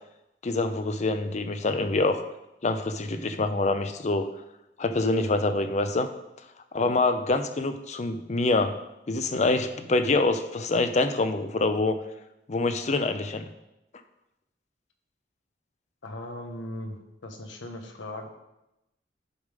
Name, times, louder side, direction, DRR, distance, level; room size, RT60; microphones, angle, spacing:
voice 1, 0.4-2.2 2.6-4.3 4.8-6.1 6.7-8.8 9.1-12.0 12.5-13.4, left 2 dB, 40° left, 8 dB, 0.5 m, -25 dB
voice 2, 16.0-18.3, left 1 dB, 90° left, 4 dB, 1.1 m, -38 dB
11.0 x 3.7 x 4.9 m, 0.90 s
head